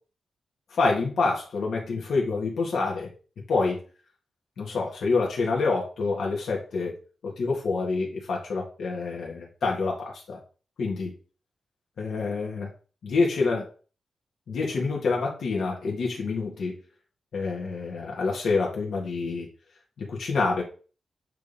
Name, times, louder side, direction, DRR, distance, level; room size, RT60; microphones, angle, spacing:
voice 1, 0.7-3.1 3.5-3.8 4.6-6.9 7.2-10.4 10.8-11.1 12.0-12.7 13.0-13.7 14.5-16.7 17.3-19.5 20.0-20.6, left 4 dB, 75° left, -2 dB, 2.0 m, -27 dB
8.2 x 3.5 x 4.2 m, 0.37 s
wide cardioid pair, 110°, 0 cm